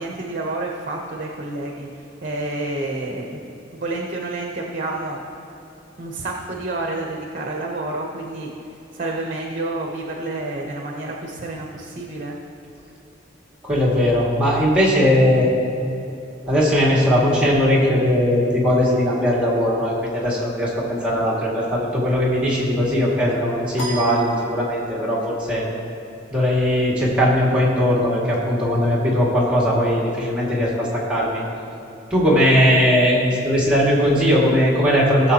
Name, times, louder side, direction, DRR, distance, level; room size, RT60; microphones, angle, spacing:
voice 1, 0.0-3.4 3.7-5.2 6.0-8.5 8.9-12.4, right 2 dB, 45° right, 0 dB, 0.9 m, -29 dB
voice 2, 13.6-15.5 16.5-25.6 26.3-31.4 32.1-35.3, equal, 5° right, -6 dB, 2.2 m, -19 dB
sound 1, 23.8-25.1, right 1 dB, 90° left, 1.5 m, -33 dB
18.5 x 7.1 x 2.9 m, 2.8 s
head